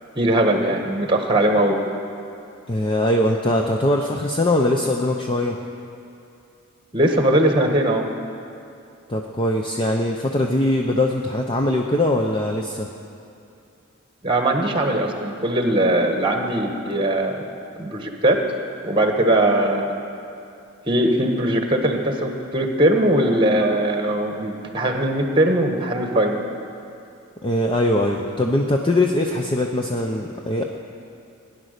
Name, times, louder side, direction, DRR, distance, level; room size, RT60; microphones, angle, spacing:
voice 1, 0.1-1.8 6.9-8.0 14.2-17.5 17.8-18.4 18.8-20.0 20.9-26.4, right 1 dB, 25° right, 4 dB, 1.3 m, -20 dB
voice 2, 2.7-5.6 9.1-12.9 27.4-30.6, left 1 dB, 20° left, 1 dB, 0.6 m, -21 dB
17.5 x 10.0 x 6.6 m, 2.6 s
head